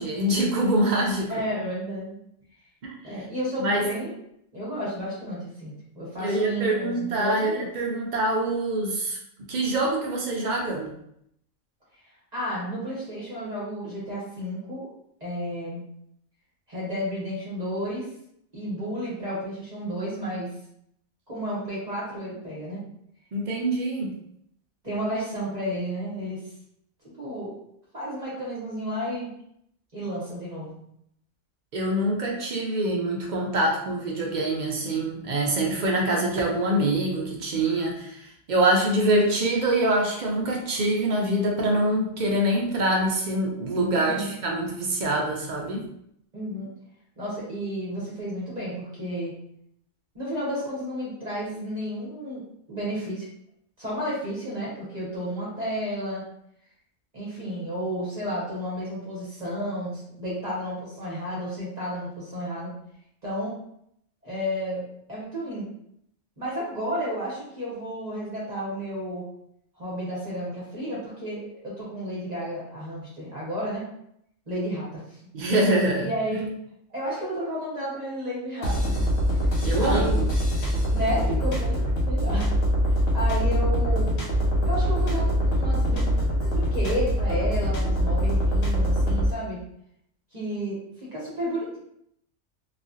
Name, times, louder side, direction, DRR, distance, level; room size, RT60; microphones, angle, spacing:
voice 1, 0.0-1.3 2.8-2.9 3.6-3.9 6.2-9.2 9.5-10.9 23.3-24.1 31.7-45.9 75.3-76.1 79.6-80.3, right 1 dB, 65° right, -1 dB, 0.4 m, -25 dB
voice 2, 1.3-2.2 3.0-4.1 4.5-7.7 12.3-14.9 15.2-15.8 16.7-18.1 18.5-20.5 21.3-22.8 24.8-26.4 27.1-27.6 27.9-29.3 29.9-30.8 44.1-44.3 46.3-46.7 47.2-49.3 50.1-52.4 52.7-53.3 53.8-56.2 57.1-62.7 63.2-63.5 64.2-65.7 66.4-69.3 69.7-73.8 74.5-75.2 76.0-76.5 76.9-79.1 79.8-80.1 80.9-82.5 82.8-84.1 84.6-89.6 90.3-91.8, equal, 35° right, -8 dB, 1.0 m, -32 dB
sound 1, 78.6-89.3, equal, 75° left, 1.0 m, -23 dB
3.0 x 2.3 x 2.6 m, 0.74 s
omnidirectional pair, 1.3 m